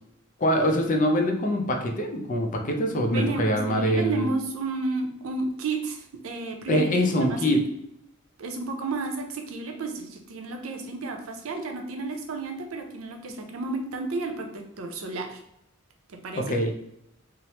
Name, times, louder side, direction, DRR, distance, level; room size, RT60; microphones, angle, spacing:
voice 1, 0.4-4.3 6.7-7.6 16.4-16.7, equal, 40° left, 3 dB, 0.5 m, -24 dB
voice 2, 3.1-6.9 7.3-7.5 8.4-15.4 16.1-16.6, right 3 dB, 90° right, 4 dB, 0.5 m, -32 dB
3.1 x 2.0 x 2.8 m, 0.76 s
head